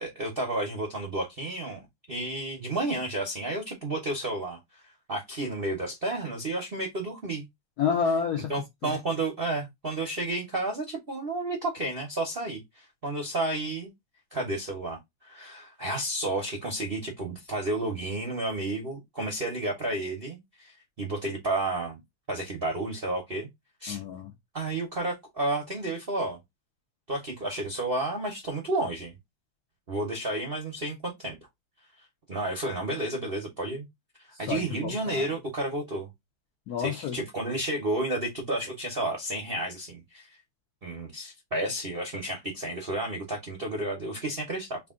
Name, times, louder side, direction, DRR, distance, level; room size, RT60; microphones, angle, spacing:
voice 1, 0.0-1.8 2.1-7.5 8.5-13.9 14.3-22.0 22.3-23.5 23.8-24.0 24.5-26.4 27.1-29.1 29.9-31.4 32.3-33.9 34.2-36.1 36.8-40.3 40.8-44.8, right 2 dB, 50° right, 0.6 m, -31 dB
voice 2, 7.8-8.5 8.8-8.9 23.9-24.3 34.4-35.3 36.7-37.2, left 6 dB, 70° left, 0.9 m, -29 dB
3.4 x 2.5 x 3.6 m
omnidirectional pair, 2.4 m